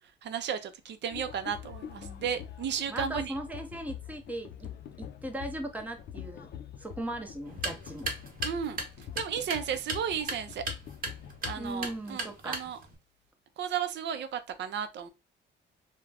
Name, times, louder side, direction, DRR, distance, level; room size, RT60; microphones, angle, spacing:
voice 1, 0.2-3.3 8.4-8.8 9.2-10.6 11.4-12.8 13.6-15.1, right 8 dB, 65° right, 0.5 m, -34 dB
sound 1, 1.1-12.0, left 10 dB, 55° left, 0.4 m, -44 dB
voice 2, 2.0-2.3 2.9-4.7 5.0-6.5 6.8-8.1 11.6-12.7, right 1 dB, 10° right, 0.6 m, -38 dB
sound 2, 7.4-13.0, right 3 dB, 45° right, 1.0 m, -38 dB
2.4 x 2.1 x 3.3 m
cardioid pair, 90°, 20 cm